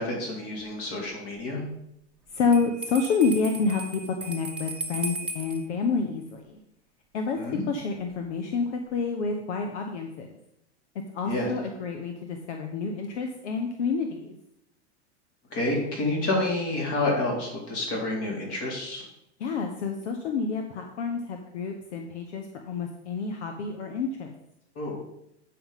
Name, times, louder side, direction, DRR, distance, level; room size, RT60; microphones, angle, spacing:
voice 1, 0.0-1.6 7.3-7.6 11.2-11.5 15.5-19.0 24.8-25.0, left 2 dB, 40° left, -1 dB, 3.8 m, -29 dB
voice 2, 2.3-6.6 7.1-10.4 11.1-14.4 19.4-24.3, left 4 dB, 75° left, 4 dB, 1.2 m, -29 dB
Bell, 2.5-5.6, right 2 dB, 5° right, 1.2 m, -36 dB
8.6 x 5.8 x 5.8 m, 0.79 s
hypercardioid pair, 130°, 35 cm